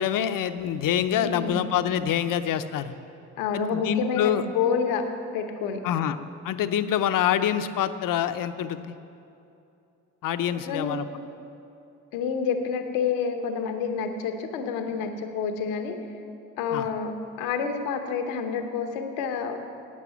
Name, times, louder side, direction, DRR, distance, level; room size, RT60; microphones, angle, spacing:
voice 1, 0.0-3.0 3.5-4.4 5.8-6.2 6.4-8.9 10.2-11.0 16.7-16.9, left 10 dB, 65° left, 10 dB, 0.7 m, -26 dB
voice 2, 1.2-1.8 3.4-5.1 5.3-5.9 10.5-11.0 12.1-15.9 16.6-19.6, left 6 dB, 90° left, 6 dB, 0.9 m, -28 dB
8.6 x 8.4 x 9.1 m, 2.7 s
hypercardioid pair, 45°, 34 cm